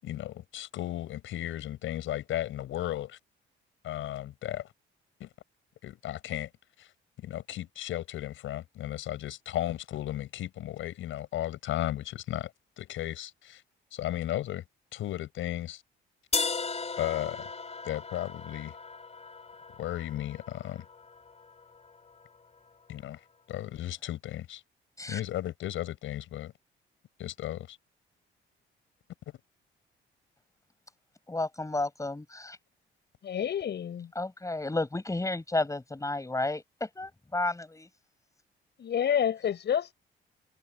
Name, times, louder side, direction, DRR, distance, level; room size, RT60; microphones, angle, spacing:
voice 1, 0.0-3.2 3.8-4.7 5.2-5.3 5.8-6.5 6.8-6.9 7.2-12.5 12.8-13.6 13.9-14.6 14.9-15.8 17.0-17.5 17.8-18.8 19.8-20.9 22.9-23.2 23.5-24.6 25.1-26.5 27.2-27.8, left 13 dB, 80° left, 7.0 m, -35 dB
sound 1, 16.3-22.3, left 4 dB, 35° left, 4.0 m, -37 dB
voice 2, 31.3-32.6 34.1-37.9, left 2 dB, 15° left, 6.3 m, -32 dB
voice 3, 33.2-34.1 38.8-39.9, left 9 dB, 60° left, 7.7 m, -28 dB
cardioid pair, 90°, 20 cm